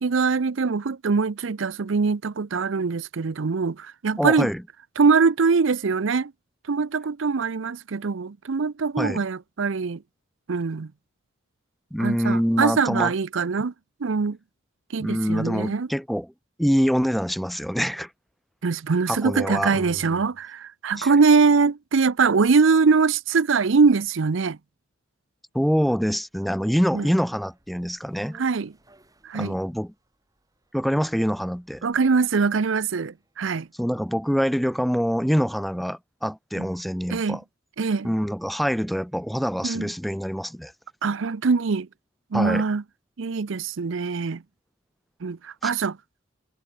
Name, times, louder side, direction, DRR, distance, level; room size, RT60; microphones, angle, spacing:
voice 1, 0.0-4.5 5.0-6.3 6.7-10.0 10.5-10.9 12.0-13.7 14.0-14.4 14.9-15.9 18.6-24.6 26.9-27.1 28.3-28.7 29.2-29.5 31.8-33.7 36.6-36.7 37.1-37.4 37.8-38.1 39.6-39.9 41.0-41.9 42.3-42.8 43.2-44.4 45.2-46.0, right 4 dB, 65° right, 0.6 m, -22 dB
voice 2, 4.2-4.6 9.0-9.2 11.9-13.1 15.0-16.3 16.6-18.1 19.1-20.2 21.0-21.1 25.5-28.4 29.3-29.9 30.7-31.9 33.8-37.4 38.0-40.7 42.3-42.6 45.6-45.7, equal, ahead, 0.5 m, -25 dB
sound 1, 26.4-34.7 35.0-35.1, right 1 dB, 20° right, 6.2 m, -58 dB
head